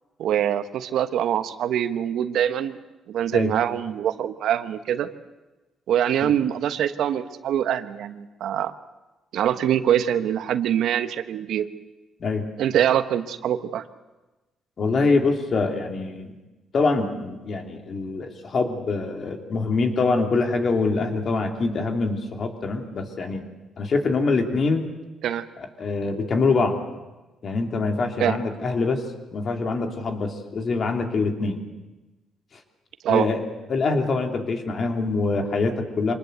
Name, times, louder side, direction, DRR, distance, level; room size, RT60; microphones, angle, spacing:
voice 1, 0.2-2.8 3.1-5.1 5.9-8.7 9.3-11.7 12.6-13.8 25.2-25.4 28.2-28.4 33.0-33.3, right 10 dB, 75° right, 11 dB, 1.1 m, -24 dB
voice 2, 14.8-16.4 16.7-23.4 23.8-24.9 25.8-26.8 27.4-29.0 29.3-31.6 33.1-33.4 33.7-36.2, left 3 dB, 50° left, 5 dB, 3.2 m, -24 dB
25.0 x 20.0 x 8.1 m, 1.1 s
cardioid pair, 90°, 0 cm